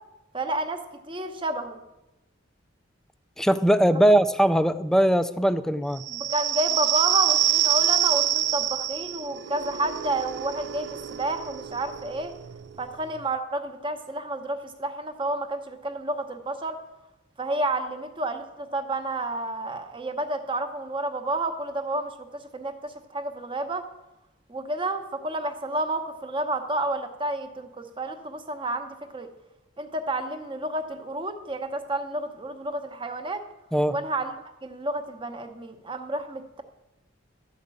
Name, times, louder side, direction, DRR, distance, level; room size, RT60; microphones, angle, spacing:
voice 1, 0.3-1.8 3.9-4.0 6.1-12.3 12.8-16.8 17.4-23.8 24.5-29.3 29.8-33.4 33.9-34.3 34.6-36.6, right 2 dB, 25° right, 7 dB, 0.9 m, -30 dB
voice 2, 3.4-6.1 33.7-34.0, right 1 dB, 5° left, 13 dB, 0.3 m, -20 dB
sound 1, 6.0-13.2, right 11 dB, 60° right, 0.5 m, -26 dB
12.5 x 5.1 x 8.3 m, 0.99 s
head